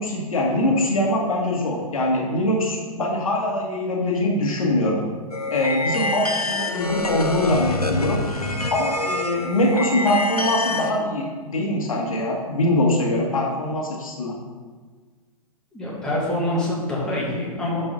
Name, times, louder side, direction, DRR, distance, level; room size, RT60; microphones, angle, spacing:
voice 1, 0.0-5.0 5.5-8.2 8.7-14.4, left 1 dB, 65° left, -1 dB, 1.9 m, -23 dB
sound 1, 5.3-10.9, left 2 dB, 90° left, 0.8 m, -26 dB
voice 2, 15.7-17.9, left 1 dB, 5° left, -6 dB, 2.2 m, -25 dB
11.0 x 5.4 x 4.0 m, 1.5 s
figure-of-eight pair, 110°, 19 cm